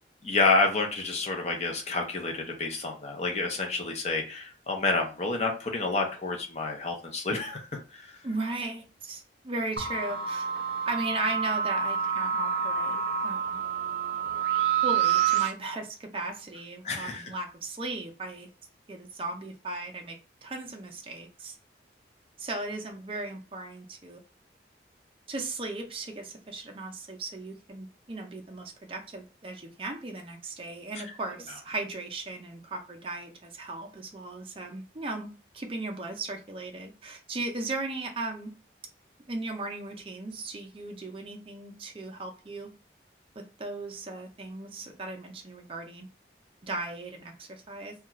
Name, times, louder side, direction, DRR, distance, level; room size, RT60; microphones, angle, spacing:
voice 1, 0.2-7.6 7.9-8.0 16.8-17.2, left 3 dB, 35° left, 2 dB, 0.6 m, -28 dB
voice 2, 8.2-10.5 10.9-13.5 14.8-18.5 18.9-20.2 20.4-21.6 22.4-24.2 25.3-35.3 35.5-38.5 39.3-42.7 43.4-46.1 46.6-47.9, right 2 dB, 30° right, 3 dB, 0.5 m, -37 dB
sound 1, 9.8-15.5, right 8 dB, 65° right, 0.7 m, -28 dB
2.4 x 2.3 x 2.9 m, 0.34 s
head